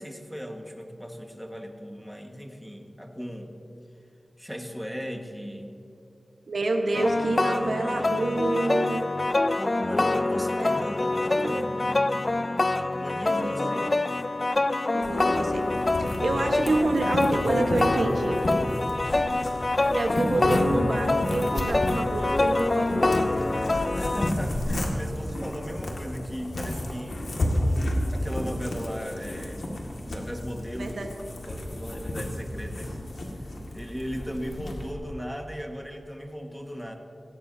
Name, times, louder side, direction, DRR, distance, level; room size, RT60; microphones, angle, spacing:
voice 1, 0.0-3.5 4.4-5.7 9.5-11.9 13.0-13.8 23.9-27.3 28.1-29.7 30.0-31.0 31.4-33.0 33.3-33.4 33.7-37.0, equal, ahead, 2 dB, 1.6 m, -37 dB
voice 2, 6.5-9.0 10.6-10.8 11.3-11.7 13.4-13.9 14.9-15.7 16.2-18.4 19.9-23.2 30.8-31.1, right 2 dB, 90° right, 3 dB, 1.3 m, -28 dB
sound 1, 6.9-24.3, left 2 dB, 40° left, 0.4 m, -26 dB
sound 2, 15.0-34.9, left 1 dB, 90° left, 2.0 m, -32 dB
17.5 x 17.0 x 2.8 m, 2.7 s
wide cardioid pair, 75°, 0 cm